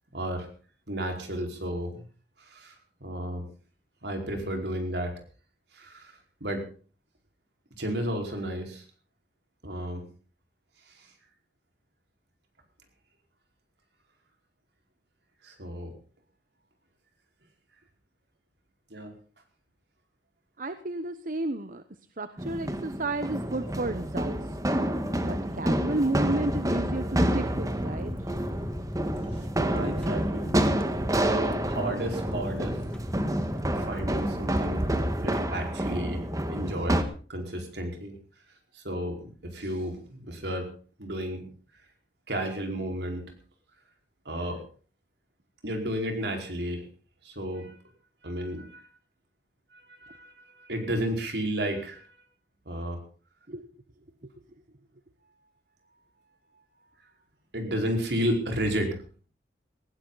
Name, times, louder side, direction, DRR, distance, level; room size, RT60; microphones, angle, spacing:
voice 1, 0.1-0.5 0.9-2.0 2.4-2.7 3.0-3.4 4.0-5.1 5.7-6.7 7.8-8.9 9.6-10.0 10.9-11.1 15.4-15.9 18.9-19.1 29.3-30.5 31.2-32.8 33.7-34.9 35.2-38.1 38.7-40.7 41.0-41.5 42.3-43.3 44.2-44.6 45.6-46.9 47.2-47.7 48.2-48.9 49.7-52.1 52.6-53.0 57.5-59.0, right 1 dB, 70° right, 3 dB, 4.9 m, -32 dB
voice 2, 20.6-21.8 22.2-24.4 25.2-28.1 53.5-53.7, right 2 dB, 50° right, 11 dB, 1.0 m, -32 dB
sound 1, 22.4-37.0, right 1 dB, 20° right, 1.6 m, -28 dB
sound 2, 27.6-35.3, equal, 5° left, 1.1 m, -39 dB
19.5 x 16.5 x 4.1 m, 0.40 s
head